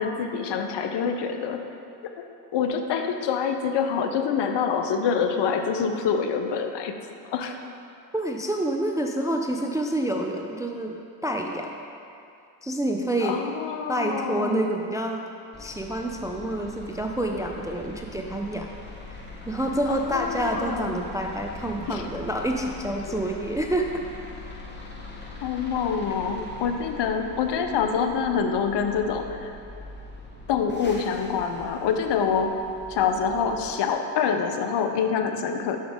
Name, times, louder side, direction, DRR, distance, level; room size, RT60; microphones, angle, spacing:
voice 1, 0.0-1.7 2.5-6.9 7.2-7.6 13.2-14.6 19.9-21.0 21.9-22.0 23.1-23.2 25.4-29.6 30.5-32.6 32.9-35.8, left 6 dB, 55° left, 6 dB, 0.8 m, -26 dB
voice 2, 8.1-11.0 11.2-11.7 12.6-13.4 13.9-15.2 15.6-18.7 19.5-24.0, right 1 dB, 5° right, 2 dB, 0.4 m, -28 dB
sound 1, 15.5-33.7, left 3 dB, 20° left, 1.4 m, -42 dB
7.3 x 6.0 x 3.7 m, 2.5 s
hypercardioid pair, 60°, 50 cm